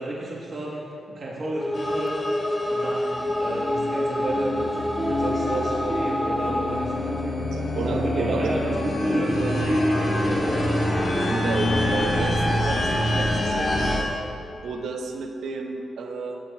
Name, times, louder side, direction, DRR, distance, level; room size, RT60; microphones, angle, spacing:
voice 1, 0.0-2.2 2.7-4.7 5.0-7.4 7.8-10.7, right 1 dB, 45° right, -4 dB, 1.1 m, -31 dB
sound 1, 1.4-7.2, left 1 dB, 5° left, 0.4 m, -28 dB
sound 2, 1.7-14.0, left 1 dB, 45° left, 1.3 m, -26 dB
sound 3, 4.7-6.2 6.5-9.2 9.5-13.8, left 2 dB, 15° right, 1.6 m, -34 dB
voice 2, 7.5-8.6 11.3-13.8 14.6-16.4, right 4 dB, 85° right, 3 dB, 0.7 m, -32 dB
13.0 x 9.3 x 2.3 m, 2.7 s
wide cardioid pair, 120°, 0 cm